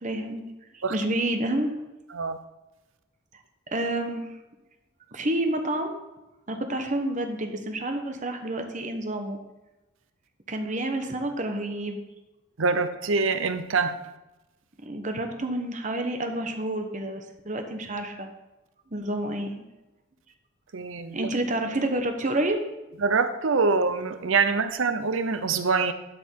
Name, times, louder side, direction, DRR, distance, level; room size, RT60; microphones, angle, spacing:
voice 1, 0.0-0.4 0.7-1.7 3.7-4.3 5.1-5.9 6.5-9.4 10.5-12.0 14.8-18.3 18.9-19.6 21.1-22.6, right 1 dB, 35° right, 5 dB, 1.0 m, -29 dB
voice 2, 12.6-14.0 20.7-21.3 23.0-25.9, right 4 dB, 70° right, 10 dB, 0.7 m, -24 dB
11.5 x 5.3 x 4.6 m, 1.0 s
head